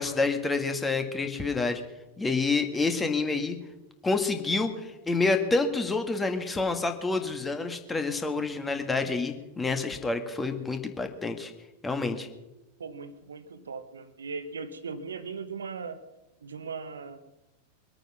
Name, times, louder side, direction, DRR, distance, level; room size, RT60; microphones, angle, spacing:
voice 1, 0.0-1.8 2.2-3.6 4.0-11.5 11.8-12.3, left 3 dB, 10° left, 6 dB, 1.7 m, -28 dB
voice 2, 12.8-16.0 16.4-17.2, right 5 dB, 70° right, 12 dB, 1.2 m, -38 dB
23.0 x 9.0 x 6.0 m, 1.0 s
figure-of-eight pair, 90°, 0 cm